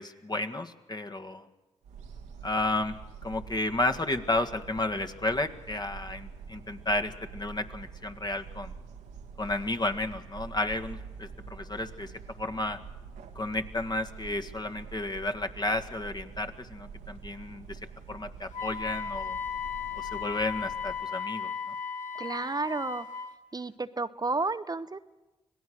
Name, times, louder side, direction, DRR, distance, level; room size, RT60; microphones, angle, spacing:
voice 1, 0.0-1.5 2.4-8.7 9.4-12.1 12.4-12.8 13.4-17.8 18.1-19.4 20.0-21.7, left 2 dB, 35° left, 7 dB, 1.8 m, -32 dB
sound 1, 1.8-21.0, right 6 dB, 90° right, 1.6 m, -46 dB
Wind instrument woodwind instrument, 18.5-23.3, left 7 dB, 75° left, 1.5 m, -36 dB
voice 2, 22.2-23.1 23.5-25.0, right 3 dB, 30° right, 12 dB, 0.8 m, -31 dB
25.5 x 18.0 x 6.3 m, 1.1 s
supercardioid pair, 45°, 13 cm